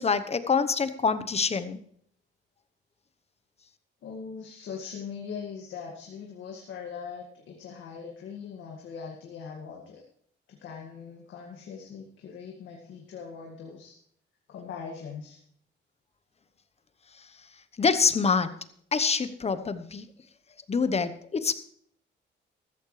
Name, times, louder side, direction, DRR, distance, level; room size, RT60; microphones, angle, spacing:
voice 1, 0.0-1.8 17.8-18.6 18.9-20.1 20.7-21.5, left 5 dB, 30° left, 12 dB, 1.0 m, -26 dB
voice 2, 4.0-10.0 10.5-13.9 14.5-15.4, left 6 dB, 75° left, 0 dB, 2.1 m, -41 dB
14.0 x 14.0 x 3.3 m, 0.65 s
cardioid pair, 90°, 20 cm